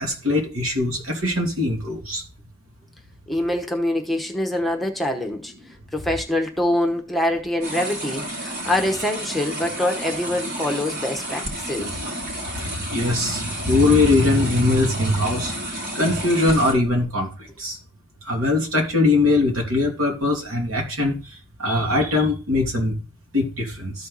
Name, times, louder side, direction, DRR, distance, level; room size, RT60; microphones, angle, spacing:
voice 1, 0.0-2.2 12.9-15.5 15.9-17.3 17.6-17.8 18.3-21.2 21.6-23.0 23.3-23.9, left 2 dB, 75° right, 2.6 m, -21 dB
voice 2, 3.3-5.5 5.9-11.9, left 1 dB, ahead, 1.0 m, -24 dB
sound 1, 7.6-16.7, right 1 dB, 50° right, 3.6 m, -31 dB
13.5 x 4.5 x 4.0 m
head